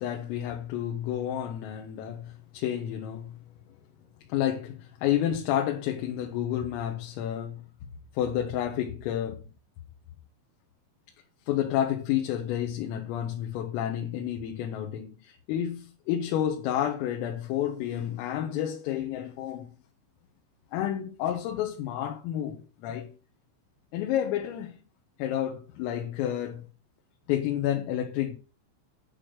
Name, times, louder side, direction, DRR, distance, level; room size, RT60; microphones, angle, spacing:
voice 1, 0.0-3.3 4.3-7.6 8.1-9.5 11.5-19.7 20.7-23.1 23.9-24.8 25.2-26.7 27.3-28.4, left 11 dB, 85° left, 4.0 m, -30 dB
11.5 x 6.1 x 6.6 m
omnidirectional pair, 5.9 m